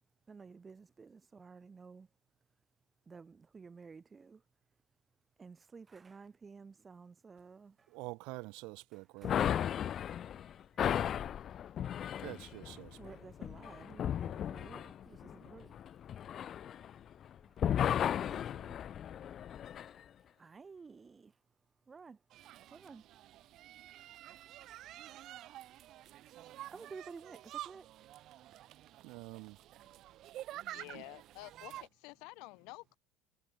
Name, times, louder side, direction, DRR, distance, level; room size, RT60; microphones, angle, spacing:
voice 1, 0.3-2.1 3.1-4.4 5.4-7.9 8.9-9.4 9.8-11.1 11.8-11.9 13.0-15.8 17.4-17.9 18.3-18.8 20.4-21.3 21.9-23.0 24.4-24.5 26.7-27.9, right 5 dB, 20° right, 5.9 m, -53 dB
voice 2, 7.9-9.6 12.2-13.2 29.0-29.6 30.9-31.0, right 26 dB, 75° right, 2.3 m, -47 dB
sound 1, 9.2-17.3 17.6-19.9, left 9 dB, 40° left, 0.6 m, -35 dB
sound 2, 22.3-31.9, right 14 dB, 55° right, 0.7 m, -49 dB
voice 3, 30.7-33.0, left 27 dB, 75° left, 2.0 m, -50 dB
supercardioid pair, 120°, 0 cm